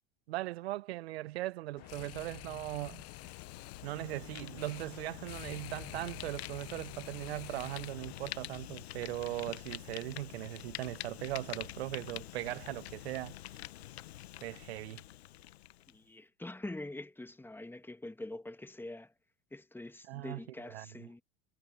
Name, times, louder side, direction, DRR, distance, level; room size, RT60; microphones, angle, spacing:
voice 1, 0.3-3.0 3.8-13.4 14.4-15.0 20.1-21.1, right 17 dB, 75° right, 1.0 m, -39 dB
sound 1, 1.8-8.2, left 22 dB, 50° left, 1.0 m, -49 dB
Fire, 2.6-16.0, left 14 dB, 80° left, 1.5 m, -47 dB
voice 2, 15.9-19.1 19.5-21.2, left 2 dB, 5° left, 1.6 m, -45 dB
hypercardioid pair, 85°, 32 cm